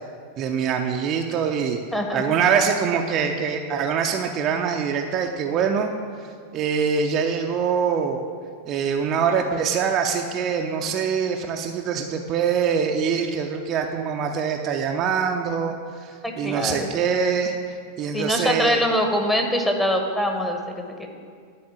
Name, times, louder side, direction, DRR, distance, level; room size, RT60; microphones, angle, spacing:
voice 1, 0.4-1.8 2.1-5.9 6.5-8.2 8.7-15.7 16.0-18.8, right 6 dB, 35° right, 3 dB, 0.6 m, -24 dB
voice 2, 1.9-2.8 16.2-16.9 18.1-21.1, equal, 5° left, 3 dB, 1.1 m, -24 dB
10.5 x 4.3 x 7.7 m, 2.1 s
figure-of-eight pair, 90°, 0 cm